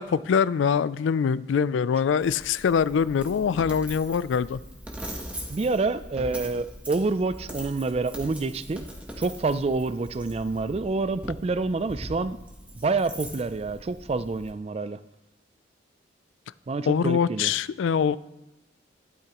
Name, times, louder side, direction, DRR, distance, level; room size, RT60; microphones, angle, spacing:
voice 1, 0.0-4.6 16.9-18.2, left 6 dB, 75° left, 18 dB, 0.3 m, -24 dB
Coin (dropping), 2.2-14.5, equal, 5° right, 1.1 m, -41 dB
voice 2, 5.5-8.9 9.2-12.4 12.8-15.0 16.7-17.5, right 3 dB, 30° right, 13 dB, 0.3 m, -27 dB
12.0 x 12.0 x 3.0 m, 0.99 s
head